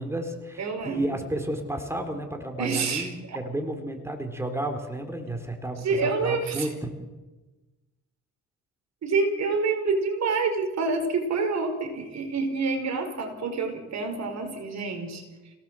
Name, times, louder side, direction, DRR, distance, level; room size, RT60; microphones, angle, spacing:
voice 1, 0.0-6.9, right 1 dB, 10° right, 5 dB, 3.9 m, -32 dB
voice 2, 0.6-1.2 2.6-3.4 5.8-6.7 9.0-15.2, right 4 dB, 60° right, 6 dB, 5.1 m, -27 dB
28.5 x 18.5 x 7.7 m, 1.2 s
cardioid pair, 90°, 30 cm